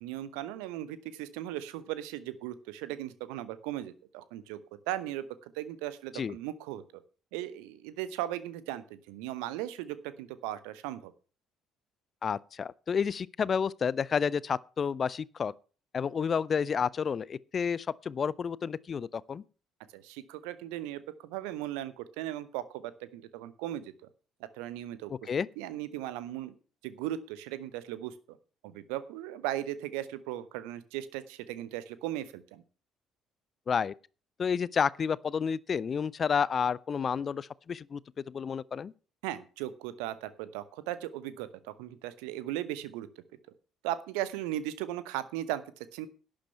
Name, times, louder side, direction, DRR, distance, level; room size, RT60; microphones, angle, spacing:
voice 1, 0.0-4.6 4.9-5.2 5.5-6.8 7.3-11.1 19.9-23.9 24.6-25.1 25.6-26.5 26.8-28.4 28.6-32.6 39.2-43.1 43.8-45.6 45.9-46.1, right 13 dB, 65° right, 0.9 m, -37 dB
voice 2, 12.2-15.5 15.9-19.4 25.3-25.5 33.7-33.9 34.4-38.0 38.3-38.9, left 6 dB, 40° left, 0.5 m, -30 dB
11.5 x 8.9 x 5.7 m
figure-of-eight pair, 50°, 0 cm